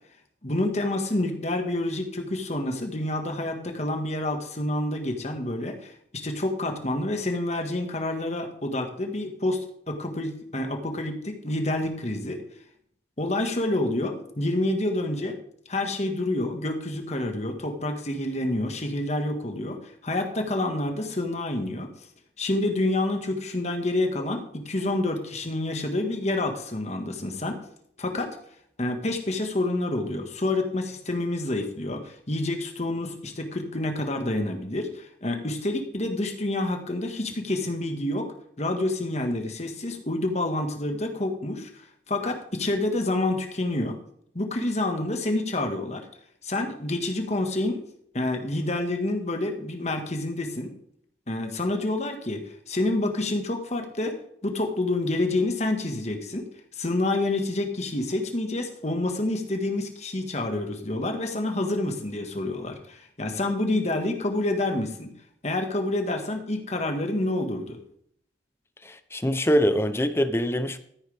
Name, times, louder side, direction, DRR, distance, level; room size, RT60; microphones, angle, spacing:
voice 1, 0.4-12.4 13.2-15.4 15.7-21.9 22.4-27.6 28.0-28.4 28.8-38.3 38.6-41.7 42.1-44.0 44.3-46.0 46.4-47.8 48.1-50.7 51.3-54.2 54.4-56.5 56.7-65.1 65.4-67.8, left 2 dB, 40° left, 4 dB, 1.7 m, -28 dB
voice 2, 68.8-70.8, equal, 15° left, 11 dB, 0.7 m, -24 dB
14.0 x 9.4 x 3.5 m, 0.67 s
head